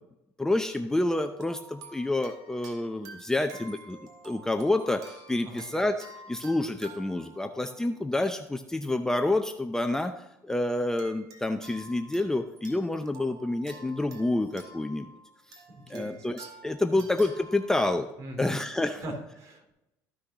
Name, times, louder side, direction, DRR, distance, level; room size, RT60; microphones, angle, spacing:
voice 1, 0.4-4.0 4.2-15.1 15.9-18.1 18.4-19.0, left 2 dB, 10° left, 6 dB, 0.6 m, -28 dB
sound 1, 0.7-8.6 9.3-9.4 11.0-17.9, right 2 dB, 65° right, 2.0 m, -50 dB
voice 2, 15.7-16.2 18.2-18.6 19.0-19.7, right 1 dB, 50° right, 2 dB, 3.3 m, -40 dB
14.0 x 6.3 x 3.0 m, 0.91 s
cardioid pair, 115°, 7 cm